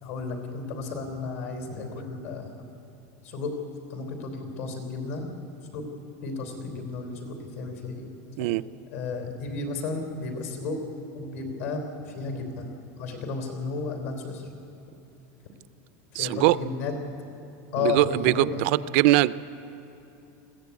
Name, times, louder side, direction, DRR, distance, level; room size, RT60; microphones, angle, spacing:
voice 1, 0.0-2.5 3.2-3.5 3.9-5.9 6.2-8.6 8.9-10.8 11.1-11.8 12.1-12.7 13.0-14.5 16.1-16.9 17.7-18.6, left 4 dB, 70° left, 5 dB, 3.4 m, -33 dB
voice 2, 16.1-16.6 17.8-19.3, right 18 dB, 50° right, 17 dB, 0.4 m, -21 dB
21.5 x 15.5 x 8.3 m, 2.8 s
supercardioid pair, 170°, 8 cm